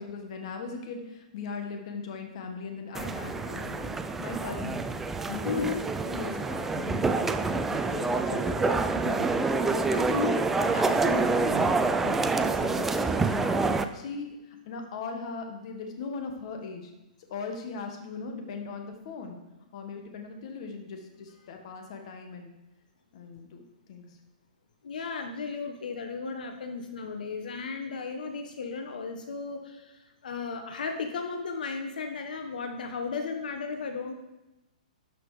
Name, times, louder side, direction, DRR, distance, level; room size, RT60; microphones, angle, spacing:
voice 1, 0.0-4.8 5.3-5.7 6.0-9.4 9.7-10.3 10.6-16.9 17.3-19.4 19.7-22.5 23.1-23.6 23.9-24.2 24.9-25.0, left 4 dB, 45° left, 4 dB, 1.6 m, -39 dB
sound 1, 2.9-13.8, right 3 dB, 5° right, 0.4 m, -27 dB
voice 2, 5.4-5.8 10.1-10.3 24.8-34.1, left 5 dB, 75° left, 5 dB, 1.3 m, -35 dB
12.5 x 5.9 x 5.0 m, 1.0 s
hypercardioid pair, 165°, 5 cm